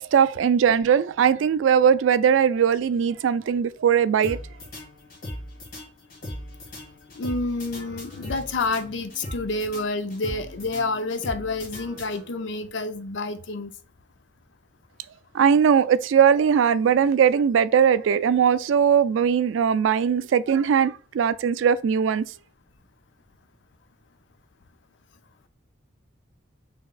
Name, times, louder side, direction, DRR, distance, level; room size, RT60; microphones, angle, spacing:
voice 1, 0.0-4.4 15.3-22.2, right 7 dB, 85° right, 0.3 m, -20 dB
sound 1, 4.2-12.5, left 1 dB, 50° left, 2.2 m, -39 dB
voice 2, 7.1-13.7, left 3 dB, 70° left, 0.5 m, -29 dB
5.8 x 3.4 x 2.4 m
head